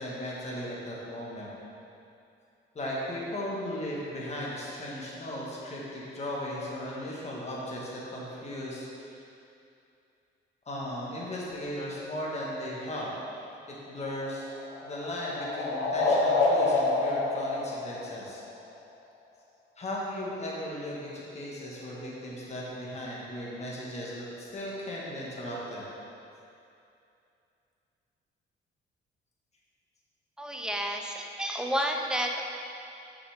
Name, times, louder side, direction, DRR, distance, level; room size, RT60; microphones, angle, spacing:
voice 1, 0.0-1.5 2.7-9.2 10.6-14.5 14.8-18.4 19.8-25.9, left 1 dB, 35° left, -5 dB, 1.6 m, -37 dB
sound 1, 13.9-18.6, left 3 dB, 80° left, 0.8 m, -28 dB
voice 2, 30.4-32.4, equal, 5° right, 2 dB, 0.6 m, -30 dB
6.8 x 6.0 x 3.6 m, 2.6 s
cardioid pair, 90°, 20 cm